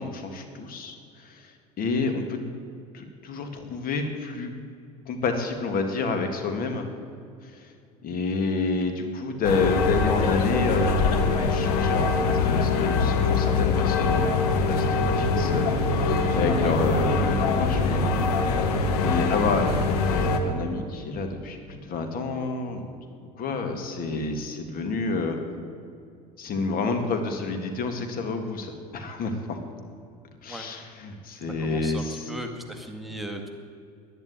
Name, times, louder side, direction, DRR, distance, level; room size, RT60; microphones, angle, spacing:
voice 1, 0.0-2.4 2.9-4.5 5.1-6.9 7.4-7.7 8.0-18.2 19.0-19.7 20.0-22.9 23.4-25.4 26.4-29.6 30.4-32.3, left 4 dB, 45° left, 5 dB, 2.2 m, -29 dB
sound 1, 9.4-20.4, left 4 dB, 75° left, 1.5 m, -23 dB
voice 2, 31.6-33.5, right 1 dB, ahead, 4 dB, 2.0 m, -37 dB
11.5 x 10.5 x 9.6 m, 2.4 s
hypercardioid pair, 80°, 20 cm